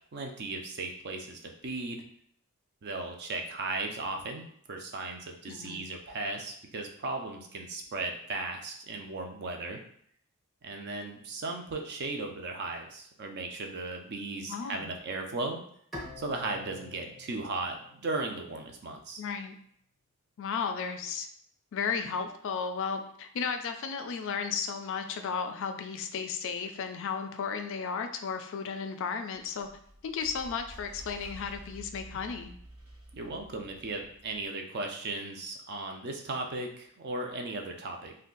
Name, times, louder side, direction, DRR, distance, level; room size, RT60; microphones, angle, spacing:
voice 1, 0.1-2.0 2.8-9.8 10.6-15.6 16.2-19.2 33.1-38.1, right 3 dB, 50° right, 3 dB, 0.5 m, -36 dB
voice 2, 5.5-5.8 14.5-14.9 19.2-19.5 20.4-21.3 21.7-29.7 30.0-32.6, left 6 dB, 60° left, 7 dB, 0.3 m, -34 dB
Bowed string instrument, 15.9-19.2, left 2 dB, ahead, 0.7 m, -47 dB
sound 1, 29.3-34.4, right 1 dB, 75° right, 0.9 m, -50 dB
2.6 x 2.2 x 3.8 m, 0.64 s
head